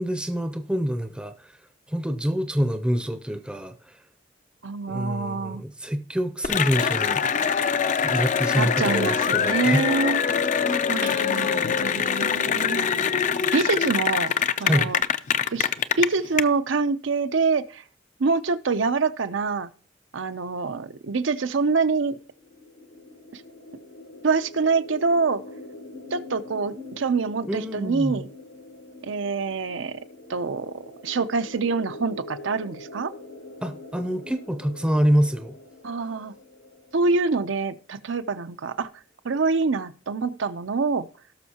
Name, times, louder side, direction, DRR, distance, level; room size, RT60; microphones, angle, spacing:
voice 1, 0.0-1.5 1.9-3.7 4.9-7.6 8.0-9.8 11.5-11.7 14.6-14.9 27.5-28.2 33.6-35.6, equal, 5° right, 0.6 m, -26 dB
voice 2, 4.6-5.6 8.5-10.2 10.9-12.9 13.5-14.3 14.6-15.0 15.5-15.7 16.0-17.8 18.2-19.7 20.1-22.2 23.3-23.4 24.2-25.4 26.1-28.3 29.1-30.0 30.3-33.1 35.8-36.3 36.9-38.9 39.2-41.1, right 4 dB, 80° right, 0.6 m, -25 dB
Cheering / Applause, 6.4-16.4, left 7 dB, 40° left, 0.4 m, -23 dB
sound 1, 22.3-38.0, left 2 dB, 70° left, 1.3 m, -44 dB
17.5 x 6.4 x 2.9 m
head